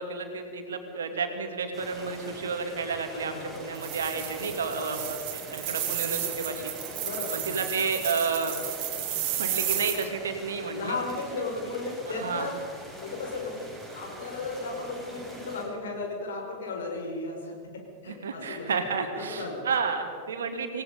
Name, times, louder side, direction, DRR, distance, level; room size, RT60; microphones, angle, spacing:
voice 1, 0.0-6.7 7.3-8.5 9.4-11.0 12.1-12.5 18.0-20.8, right 5 dB, 65° right, 5 dB, 2.6 m, -31 dB
sound 1, 1.7-15.6, right 1 dB, 5° left, 7.5 m, -44 dB
voice 2, 3.1-3.7 4.8-5.0 7.0-7.5 10.7-12.6 13.0-18.7 19.1-19.6, left 3 dB, 60° left, 1 dB, 5.2 m, -35 dB
sound 2, 3.7-10.1, right 11 dB, 45° right, 2.7 m, -33 dB
27.0 x 18.5 x 5.4 m, 2.1 s
figure-of-eight pair, 90°, 0 cm